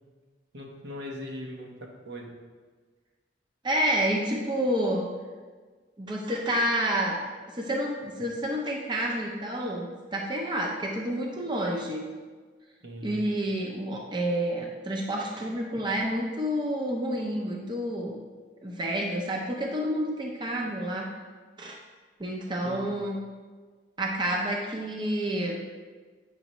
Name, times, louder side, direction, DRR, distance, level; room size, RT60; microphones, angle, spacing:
voice 1, 0.5-2.3 12.8-13.3 22.6-23.0, equal, 70° right, 0 dB, 1.0 m, -40 dB
voice 2, 3.6-5.0 6.0-7.2 7.5-12.0 13.0-18.2 18.6-21.1 21.6-21.8 22.2-23.2 24.0-25.6, right 1 dB, 25° right, -1 dB, 0.6 m, -29 dB
8.0 x 5.4 x 3.1 m, 1.4 s
head